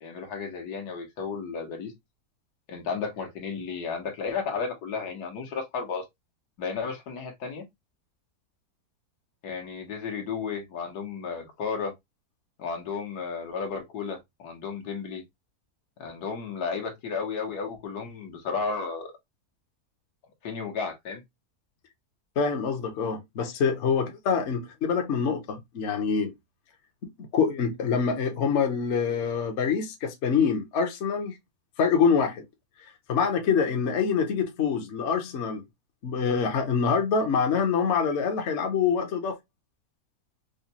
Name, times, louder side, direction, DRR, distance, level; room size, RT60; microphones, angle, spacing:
voice 1, 0.0-1.9 2.7-6.0 6.6-7.6 9.4-11.9 12.6-15.2 16.0-19.1 20.4-21.2, left 5 dB, 80° left, 1.5 m, -33 dB
voice 2, 22.4-26.3 27.3-31.3 31.8-32.4 32.8-35.6 36.0-39.3, left 6 dB, 55° left, 0.9 m, -25 dB
5.0 x 2.2 x 2.7 m
omnidirectional pair, 1.7 m